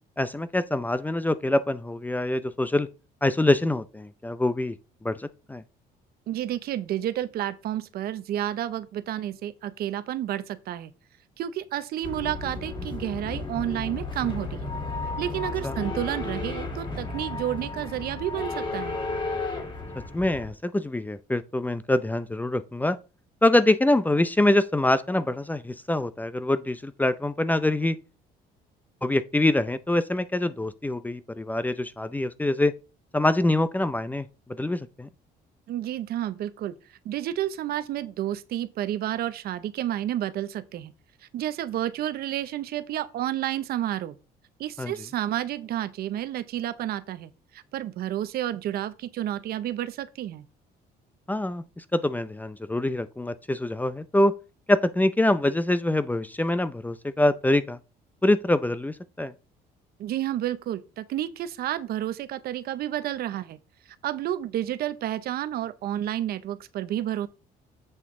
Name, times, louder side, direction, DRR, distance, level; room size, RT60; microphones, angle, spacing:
voice 1, 0.2-2.9 3.2-4.8 5.0-5.6 15.6-15.7 20.1-23.0 23.4-28.0 29.0-32.7 33.1-34.3 34.6-35.1 44.8-44.9 51.3-54.3 54.7-57.8 58.2-59.3, left 1 dB, 10° left, 0.5 m, -24 dB
voice 2, 6.3-10.9 11.4-14.7 15.2-19.0 35.7-36.8 37.0-40.9 41.3-44.2 44.6-50.5 60.0-63.6 64.0-67.3, right 12 dB, 65° right, 0.7 m, -30 dB
sound 1, 12.0-20.5, left 3 dB, 30° left, 2.1 m, -33 dB
7.9 x 5.8 x 3.7 m
cardioid pair, 110°, 17 cm